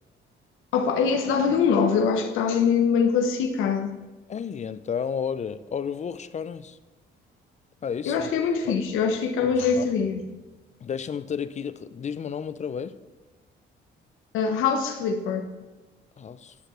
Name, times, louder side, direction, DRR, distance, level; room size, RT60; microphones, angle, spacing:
voice 1, 0.7-3.9 8.0-10.2 14.3-15.5, left 6 dB, 90° left, 0.9 m, -23 dB
voice 2, 4.3-6.8 7.8-8.3 8.6-8.8 9.4-9.9 10.8-13.0 16.2-16.5, left 7 dB, 35° left, 0.4 m, -32 dB
11.5 x 6.6 x 3.1 m
cardioid pair, 90°, 20 cm